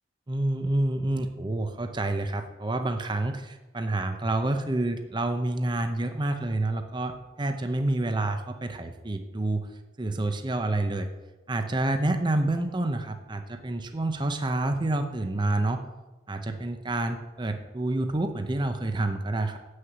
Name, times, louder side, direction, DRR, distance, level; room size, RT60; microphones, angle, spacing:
voice 1, 0.3-9.7 10.0-11.1 11.5-15.8 16.3-19.6, right 2 dB, 25° right, 7 dB, 0.7 m, -28 dB
7.6 x 6.5 x 8.0 m, 1.1 s
head